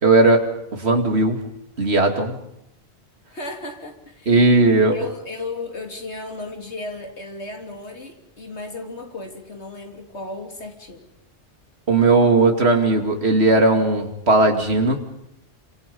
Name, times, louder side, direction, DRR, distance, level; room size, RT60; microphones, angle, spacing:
voice 1, 0.0-0.5 0.7-1.4 1.8-2.4 4.3-5.0 11.9-15.0, right 2 dB, 70° right, 4 dB, 2.7 m, -17 dB
voice 2, 3.3-4.5 4.9-11.1, left 2 dB, 75° left, 2 dB, 3.5 m, -35 dB
29.0 x 26.5 x 5.4 m, 0.80 s
omnidirectional pair, 1.1 m